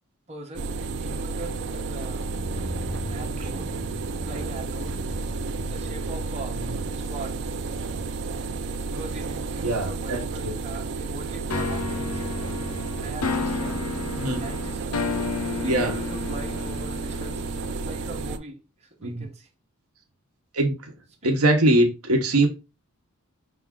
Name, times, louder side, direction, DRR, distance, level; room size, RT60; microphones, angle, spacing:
voice 1, 0.3-0.7 1.0-2.3 3.1-3.7 4.2-5.0 5.5-6.6 6.9-7.4 8.8-12.4 13.0-13.8 14.4-15.0 15.5-17.4 17.8-19.5 21.2-21.3, right 2 dB, 30° right, 0.9 m, -40 dB
sound 1, 0.5-18.4, right 4 dB, 55° right, 0.4 m, -32 dB
sound 2, 1.9-12.7 12.9-13.0, left 1 dB, 5° left, 0.4 m, -41 dB
voice 2, 9.6-10.6 14.2-14.4 15.6-15.9 19.0-19.2 20.5-20.9 21.2-22.5, right 1 dB, 80° right, 0.9 m, -22 dB
sound 3, 11.5-18.4, left 4 dB, 85° left, 0.5 m, -32 dB
5.3 x 2.4 x 3.6 m
head